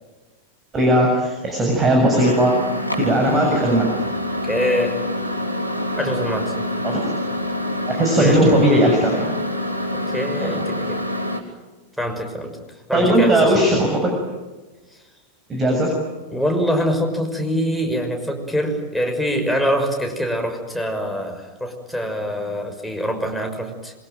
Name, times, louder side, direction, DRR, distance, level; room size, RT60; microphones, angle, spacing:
voice 1, 0.7-2.5 3.0-3.9 6.8-7.1 7.9-9.4 10.4-10.6 12.9-14.1 15.5-16.0, right 1 dB, 20° right, 1 dB, 7.1 m, -18 dB
Microwave oven, 2.1-11.4, left 1 dB, 85° left, 3.8 m, -26 dB
voice 2, 4.5-5.0 6.0-6.5 8.2-8.6 10.1-11.0 12.0-12.6 12.9-13.5 16.3-23.9, equal, ahead, 2 dB, 6.1 m, -24 dB
26.5 x 24.0 x 9.2 m, 1.2 s
figure-of-eight pair, 90°, 0 cm